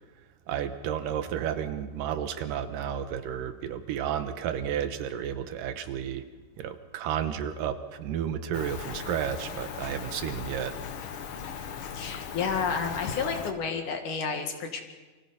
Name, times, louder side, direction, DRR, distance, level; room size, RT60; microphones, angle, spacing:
voice 1, 0.5-6.2 6.6-10.7, right 9 dB, 80° right, 9 dB, 2.6 m, -32 dB
Rain, 8.5-13.5, left 7 dB, 85° left, 1.1 m, -38 dB
voice 2, 11.9-14.8, left 5 dB, 65° left, 4 dB, 3.1 m, -30 dB
29.0 x 24.5 x 4.2 m, 1.2 s
omnidirectional pair, 4.0 m